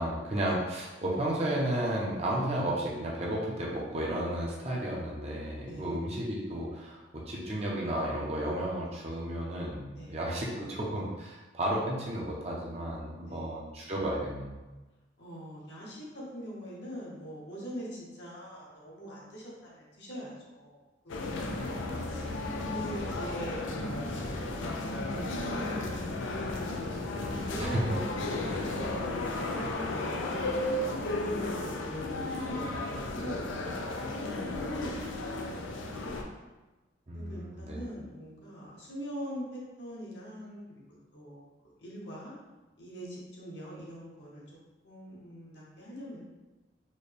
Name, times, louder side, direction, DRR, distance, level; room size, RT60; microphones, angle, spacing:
voice 1, 0.0-14.6 21.9-22.4 27.6-27.8 37.1-37.8, right 1 dB, 35° right, -4 dB, 0.6 m, -33 dB
voice 2, 13.2-13.6 15.2-22.3 22.7-26.8 27.5-30.7 31.2-36.3 37.1-42.3 42.8-44.4 44.8-46.2, equal, 60° left, -5 dB, 1.0 m, -43 dB
sound 1, 21.1-36.2, left 2 dB, 80° left, 0.4 m, -34 dB
4.1 x 2.2 x 3.3 m, 1.1 s
head